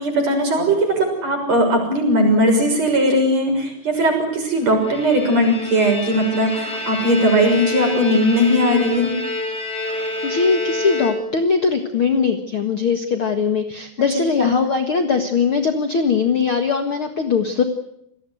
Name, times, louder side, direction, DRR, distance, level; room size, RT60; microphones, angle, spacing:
voice 1, 0.0-9.1 14.4-14.5, equal, 35° right, 4 dB, 7.4 m, -18 dB
Bowed string instrument, 4.6-11.6, left 2 dB, 15° left, 8.0 m, -28 dB
voice 2, 10.2-17.6, left 5 dB, 65° left, 6 dB, 1.3 m, -20 dB
28.0 x 19.0 x 7.9 m, 0.76 s
omnidirectional pair, 5.1 m